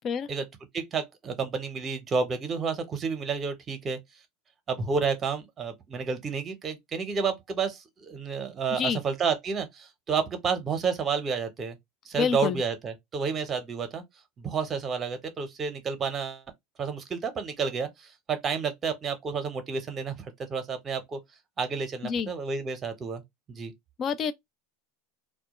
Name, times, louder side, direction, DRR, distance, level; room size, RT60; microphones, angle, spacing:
voice 1, 0.7-4.0 4.7-11.8 12.1-14.0 14.4-16.4 16.8-20.2 20.5-21.2 21.6-23.2 23.5-23.7, right 5 dB, 30° right, 0.7 m, -30 dB
voice 2, 8.7-9.0 12.2-12.6 22.0-22.3 24.0-24.3, left 6 dB, 40° left, 0.4 m, -27 dB
2.1 x 2.1 x 2.9 m
hypercardioid pair, 95°, 0 cm